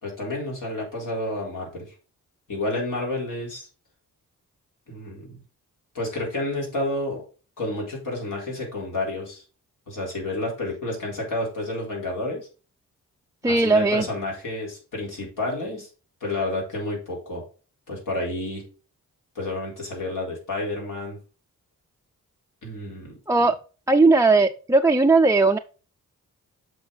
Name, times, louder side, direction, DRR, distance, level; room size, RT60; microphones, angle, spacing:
voice 1, 0.0-1.9 2.5-3.7 4.9-5.4 5.9-7.2 7.6-9.4 9.9-12.5 13.4-15.9 16.2-17.4 17.9-18.6 19.3-21.2 22.6-23.5, left 2 dB, 65° left, -2 dB, 4.2 m, -30 dB
voice 2, 13.4-14.1 23.3-23.6 23.9-25.6, right 3 dB, 10° right, 4 dB, 0.4 m, -18 dB
7.8 x 5.7 x 4.0 m, 0.37 s
cardioid pair, 60°, 34 cm